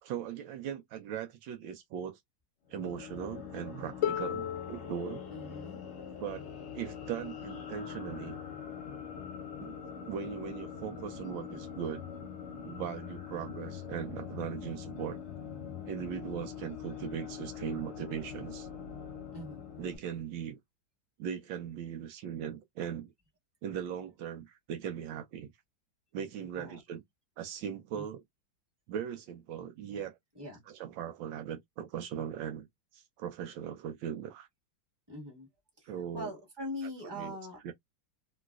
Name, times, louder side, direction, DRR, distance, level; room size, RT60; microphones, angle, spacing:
voice 1, 0.0-2.2 2.7-5.2 6.2-6.5 6.7-8.4 9.6-9.7 10.1-12.0 12.6-15.2 15.9-18.7 19.8-20.6 21.2-23.1 23.6-25.5 26.1-27.0 27.4-28.2 28.9-30.2 30.7-32.7 32.9-34.5 35.9-36.3 37.0-37.4 37.6-37.7, right 9 dB, 80° right, 1.3 m, -39 dB
sound 1, 2.7-20.0, left 7 dB, 45° left, 1.0 m, -43 dB
Harp, 4.0-9.8 10.9-11.0, left 11 dB, 80° left, 1.3 m, -40 dB
voice 2, 5.3-5.8 19.3-19.6 26.5-26.8 27.9-28.0 30.3-30.6 35.1-35.5 35.8-37.6, left 1 dB, 15° right, 1.4 m, -42 dB
3.1 x 3.0 x 2.3 m
omnidirectional pair, 2.1 m